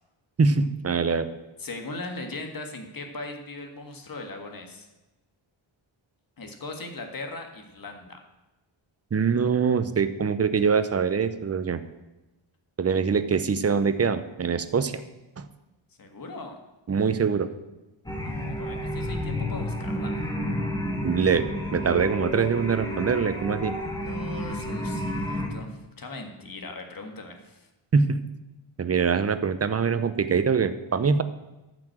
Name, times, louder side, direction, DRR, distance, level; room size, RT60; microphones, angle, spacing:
voice 1, 0.4-1.3 9.1-11.8 12.8-15.0 15.4-15.5 16.9-17.5 21.0-21.5 21.7-23.7 27.9-28.2 28.8-31.2, right 5 dB, 30° right, 12 dB, 0.7 m, -23 dB
voice 2, 1.6-4.9 6.4-8.2 16.0-16.6 18.2-20.2 23.9-27.7, left 2 dB, 45° left, 4 dB, 1.8 m, -39 dB
sound 1, 18.1-25.5, left 1 dB, 10° left, 1.6 m, -31 dB
13.5 x 6.2 x 7.8 m, 1.0 s
wide cardioid pair, 155°, 48 cm